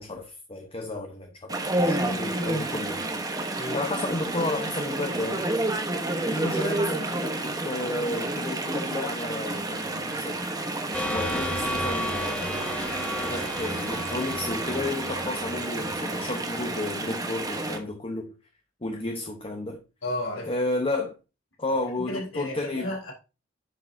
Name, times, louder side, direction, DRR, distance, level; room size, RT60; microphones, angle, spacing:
voice 1, 0.0-3.1 3.7-5.5 6.3-10.5 11.1-12.7 13.1-18.3 18.8-19.8 20.4-21.1 21.6-22.9, left 2 dB, 30° left, 0.9 m, -32 dB
Chatter / Stream, 1.5-17.8, right 2 dB, 20° right, 1.0 m, -30 dB
sound 1, 10.9-16.3, equal, 5° left, 1.4 m, -33 dB
voice 2, 20.0-20.5 22.1-23.1, left 1 dB, 85° left, 3.9 m, -33 dB
10.0 x 6.7 x 2.7 m
head